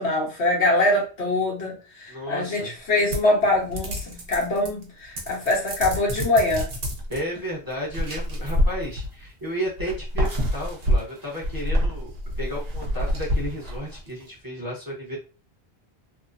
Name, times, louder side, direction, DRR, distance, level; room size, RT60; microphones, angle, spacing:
voice 1, 0.0-6.7, left 2 dB, 90° left, -3 dB, 1.3 m, -23 dB
voice 2, 2.1-2.7 7.1-12.1 12.4-15.2, equal, 20° right, -5 dB, 0.8 m, -33 dB
sound 1, 3.1-4.8 5.2-7.2 7.9-9.3 9.8-14.1, equal, 65° right, 1.0 m, -27 dB
3.0 x 2.0 x 2.4 m, 0.33 s
omnidirectional pair, 1.1 m